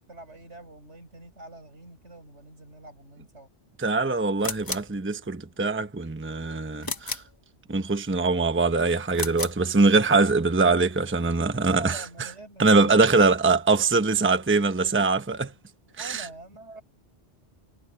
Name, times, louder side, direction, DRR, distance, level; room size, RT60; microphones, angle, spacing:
voice 1, 0.1-3.5 11.6-13.3 16.0-16.8, right 2 dB, 85° right, 7.8 m, -44 dB
voice 2, 3.8-7.2 7.7-12.3 12.6-15.5 16.0-16.3, right 3 dB, 10° right, 0.9 m, -23 dB
sound 1, 4.4-5.0 6.8-7.4 9.1-9.6, left 2 dB, 20° left, 1.0 m, -33 dB
omnidirectional pair, 1.2 m